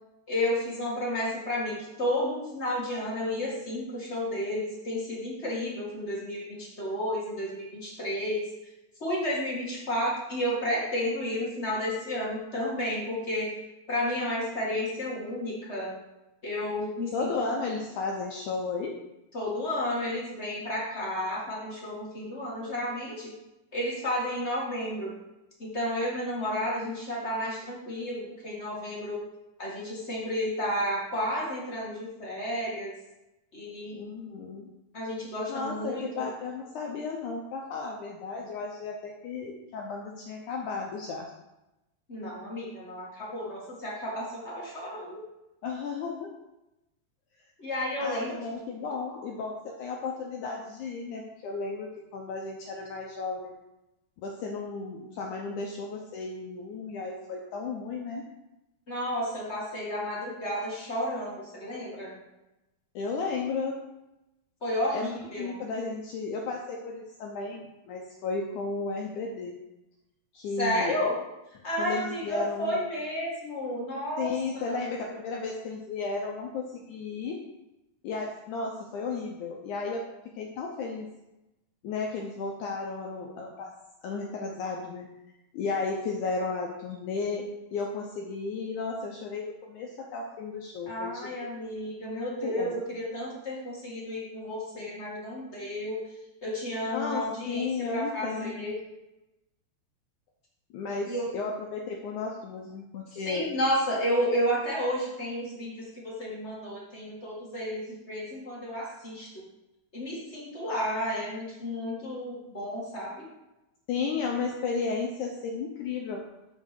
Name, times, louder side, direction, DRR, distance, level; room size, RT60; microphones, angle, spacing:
voice 1, 0.3-8.4 9.0-13.5 13.9-16.0 16.4-17.5 19.3-23.3 23.7-25.2 25.6-29.2 29.6-32.9 33.5-34.1 34.9-36.3 42.1-45.2 47.6-48.4 58.9-62.2 64.6-65.6 70.6-71.2 71.6-74.8 90.9-96.0 96.4-98.8 101.1-101.2 103.1-109.5 109.9-113.3, equal, 45° left, -5 dB, 0.8 m, -32 dB
voice 2, 17.1-19.0 33.9-34.7 35.5-41.3 45.6-46.3 48.0-53.6 54.2-58.3 63.0-63.8 64.9-65.1 65.4-69.6 70.3-71.0 71.8-72.8 74.2-77.4 78.0-81.1 81.8-83.7 84.0-85.1 85.5-87.5 87.7-91.5 92.4-92.8 96.9-98.7 100.7-103.5 113.9-116.2, left 4 dB, 75° left, 0 dB, 1.8 m, -34 dB
6.3 x 5.9 x 6.7 m, 0.96 s
omnidirectional pair, 4.4 m